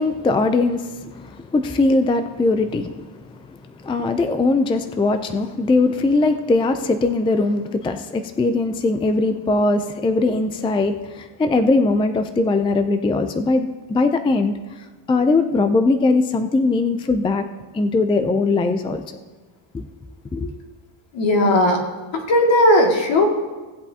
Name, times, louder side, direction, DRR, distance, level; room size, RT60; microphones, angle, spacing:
voice 1, 0.0-3.2 3.8-14.5 15.1-17.4 17.7-19.0 19.7-19.9 20.3-20.5, left 3 dB, 10° left, 8 dB, 0.4 m, -20 dB
voice 2, 21.1-21.8 22.1-23.2, left 1 dB, 65° left, 1 dB, 2.3 m, -16 dB
17.5 x 8.1 x 2.8 m, 1.3 s
cardioid pair, 120°, 49 cm